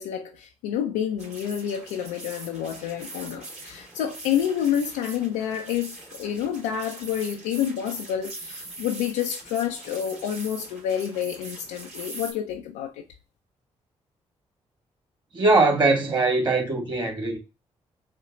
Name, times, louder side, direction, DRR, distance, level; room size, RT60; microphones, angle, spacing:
voice 1, 0.0-13.0, left 9 dB, 80° left, 0.4 m, -28 dB
sound 1, 1.2-12.3, right 2 dB, 50° right, 2.7 m, -42 dB
voice 2, 15.3-17.4, right 3 dB, 30° right, 2.2 m, -21 dB
4.4 x 2.8 x 3.7 m
hypercardioid pair, 40°, 15 cm